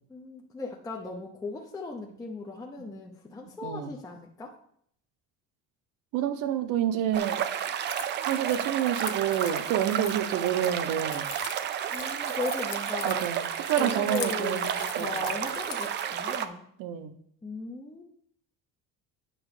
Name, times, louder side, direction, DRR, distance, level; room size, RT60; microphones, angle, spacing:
voice 1, 0.1-4.5 11.9-13.3 13.8-16.6 17.4-18.0, left 3 dB, 10° left, 0 dB, 0.6 m, -37 dB
voice 2, 6.1-7.4 8.2-11.3 13.0-14.7 15.0-15.2 16.8-17.1, right 10 dB, 65° right, 11 dB, 1.0 m, -28 dB
sound 1, 7.1-16.5, right 9 dB, 35° right, 0.4 m, -31 dB
Keys jangling, 7.9-16.0, left 13 dB, 75° left, 0.9 m, -43 dB
8.9 x 6.1 x 4.9 m, 0.66 s
cardioid pair, 175°, 34 cm